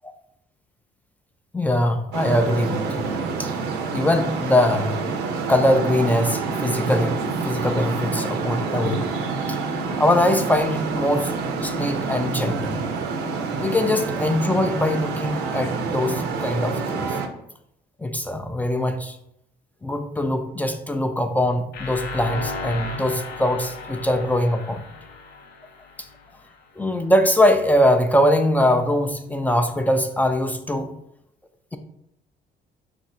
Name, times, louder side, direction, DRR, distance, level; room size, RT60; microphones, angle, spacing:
voice 1, 1.5-3.1 3.4-3.5 3.9-5.0 5.5-9.2 9.5-9.6 10.0-11.3 11.6-12.8 13.5-17.1 18.0-19.2 19.8-24.8 26.8-30.9, left 1 dB, 10° left, 7 dB, 0.3 m, -22 dB
Traffic noise roadway noise, 2.1-17.3, right 4 dB, 85° right, 0.6 m, -27 dB
sound 1, 21.7-26.6, left 4 dB, 75° left, 0.5 m, -35 dB
3.5 x 2.5 x 4.2 m, 0.76 s
cardioid pair, 110°, 17 cm